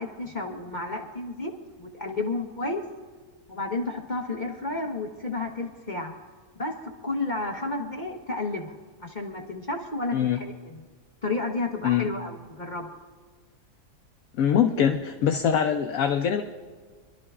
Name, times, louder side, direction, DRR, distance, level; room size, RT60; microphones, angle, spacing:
voice 1, 0.0-1.5 1.8-2.8 3.5-6.1 6.6-6.7 7.0-8.7 9.0-10.8 11.2-12.9, left 2 dB, 35° left, 1 dB, 1.0 m, -31 dB
voice 2, 14.4-16.4, left 8 dB, 65° left, 6 dB, 1.0 m, -23 dB
27.0 x 12.0 x 2.4 m, 1.5 s
omnidirectional pair, 1.7 m